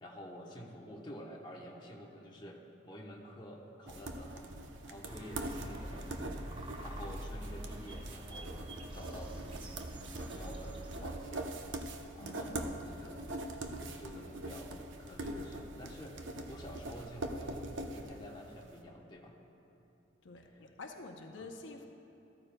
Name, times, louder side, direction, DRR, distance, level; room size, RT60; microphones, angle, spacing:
voice 1, 0.0-4.5 4.8-8.6 8.9-9.7 10.1-11.6 12.1-13.3 13.6-17.7 17.9-19.4 20.4-20.7 21.4-21.5, equal, 25° left, -2 dB, 1.0 m, -49 dB
sound 1, 3.9-18.7, right 1 dB, 80° right, 0.7 m, -43 dB
sound 2, 5.0-11.2, right 1 dB, 25° right, 0.6 m, -45 dB
voice 2, 12.2-12.6 20.2-21.9, left 2 dB, 75° left, 3 dB, 0.7 m, -48 dB
14.0 x 13.5 x 2.2 m, 3.0 s
head